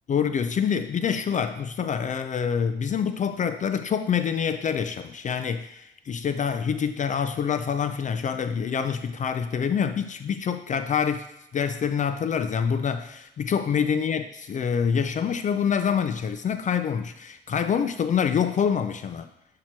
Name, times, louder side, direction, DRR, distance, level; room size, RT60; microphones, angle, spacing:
voice 1, 0.1-11.3 11.5-19.3, left 7 dB, 40° left, 9 dB, 0.4 m, -26 dB
7.4 x 2.9 x 4.4 m, 0.82 s
cardioid pair, 90°, 20 cm